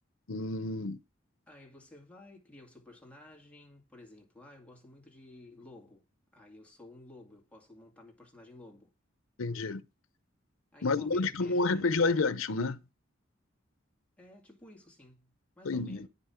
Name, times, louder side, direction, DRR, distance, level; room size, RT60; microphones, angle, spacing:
voice 1, 0.3-1.0 9.4-9.9 10.8-12.8 15.6-16.1, left 3 dB, 85° left, 0.8 m, -29 dB
voice 2, 1.5-6.1 6.3-8.9 10.7-12.0 14.2-16.1, left 2 dB, 5° left, 2.3 m, -53 dB
9.6 x 5.4 x 5.7 m
head